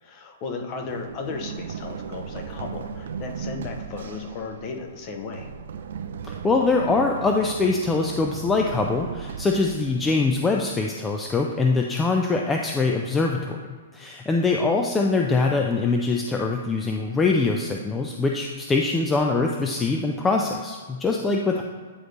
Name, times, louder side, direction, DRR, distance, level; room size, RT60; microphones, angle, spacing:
voice 1, 0.0-5.5 21.5-21.6, left 4 dB, 30° left, 4 dB, 0.7 m, -35 dB
Run, 0.9-10.6, right 6 dB, 70° right, 0.4 m, -36 dB
voice 2, 6.2-13.6 13.9-21.6, left 3 dB, 10° left, 1 dB, 0.3 m, -23 dB
9.6 x 3.9 x 3.2 m, 1.6 s
hypercardioid pair, 155°, 0 cm